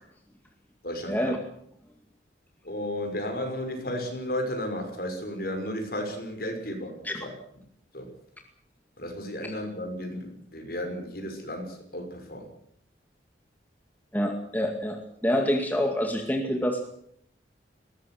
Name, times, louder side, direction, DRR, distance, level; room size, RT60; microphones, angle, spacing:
voice 1, 0.8-1.3 2.6-7.3 7.9-8.2 9.0-12.5, left 1 dB, 55° left, 4 dB, 6.0 m, -34 dB
voice 2, 14.1-16.8, equal, 10° left, 3 dB, 2.2 m, -27 dB
21.0 x 17.5 x 7.9 m, 0.69 s
head